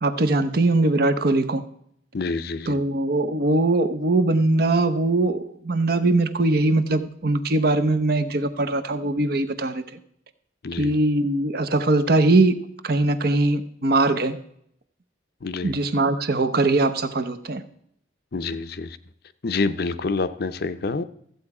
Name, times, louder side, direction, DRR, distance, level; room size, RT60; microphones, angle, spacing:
voice 1, 0.0-1.6 2.7-9.8 10.8-12.6 12.8-14.4 15.6-17.6, right 2 dB, 55° right, 10 dB, 0.8 m, -21 dB
voice 2, 2.1-2.8 10.6-10.9 15.4-15.7 18.3-19.0 19.4-21.0, left 3 dB, 55° left, 12 dB, 0.6 m, -27 dB
14.0 x 8.0 x 4.8 m, 0.69 s
head